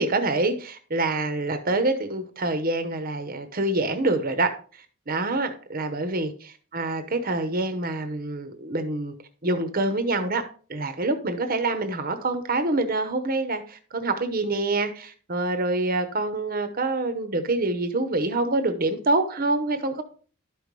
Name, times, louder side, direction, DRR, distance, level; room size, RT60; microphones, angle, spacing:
voice 1, 0.0-4.5 5.1-9.1 9.4-20.0, right 2 dB, 45° right, 8 dB, 0.9 m, -26 dB
12.0 x 5.2 x 3.2 m, 0.41 s
head